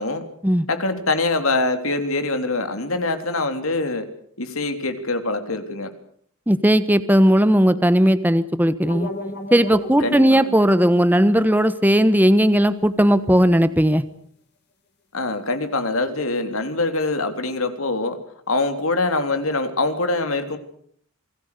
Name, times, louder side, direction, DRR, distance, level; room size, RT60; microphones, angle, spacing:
voice 1, 0.7-4.1 4.4-5.9 10.0-10.5 15.1-18.2 18.5-20.6, left 2 dB, 70° left, 8 dB, 3.5 m, -24 dB
voice 2, 6.5-9.1 9.5-14.0, equal, 10° right, 13 dB, 1.2 m, -17 dB
sound 1, 8.8-13.7, left 2 dB, 50° left, 5.3 m, -37 dB
28.0 x 20.5 x 6.8 m, 0.63 s
head